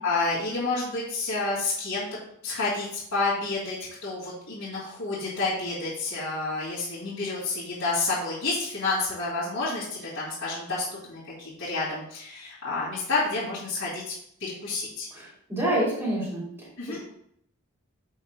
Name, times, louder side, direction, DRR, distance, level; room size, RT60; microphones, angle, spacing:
voice 1, 0.0-2.1 2.4-2.9 3.1-14.1 14.4-15.1 16.8-17.0, left 3 dB, 65° left, -10 dB, 2.5 m, -29 dB
voice 2, 15.1-16.4, right 1 dB, 10° right, -6 dB, 2.9 m, -27 dB
8.1 x 7.3 x 2.2 m, 0.70 s
head